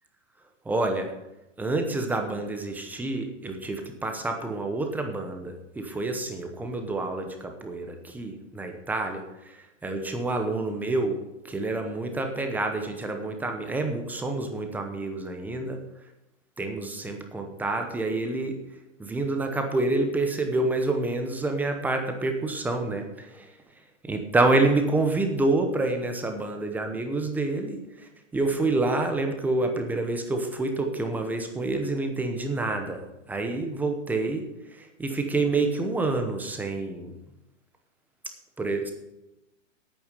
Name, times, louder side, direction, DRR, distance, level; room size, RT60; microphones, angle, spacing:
voice 1, 0.6-1.1 1.6-15.8 16.6-18.6 19.0-23.5 24.1-37.1 38.6-38.9, right 2 dB, 5° right, 5 dB, 0.8 m, -28 dB
9.4 x 9.0 x 6.6 m, 0.92 s
hypercardioid pair, 150°, 38 cm